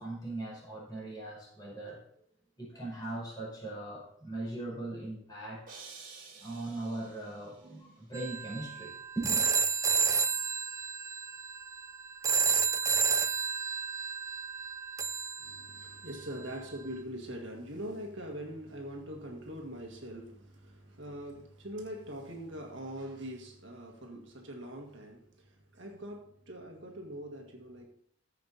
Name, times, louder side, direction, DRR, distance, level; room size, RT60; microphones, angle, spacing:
voice 1, 0.0-2.0 2.6-5.6 6.4-9.5, right 2 dB, 20° left, -4 dB, 4.9 m, -39 dB
sound 1, 5.7-7.8, right 5 dB, 40° right, 2.9 m, -51 dB
sound 2, 8.1-16.2, right 5 dB, 15° right, 0.3 m, -31 dB
voice 2, 15.4-27.9, right 1 dB, 60° right, 1 dB, 1.8 m, -43 dB
15.0 x 5.9 x 4.1 m, 0.66 s
head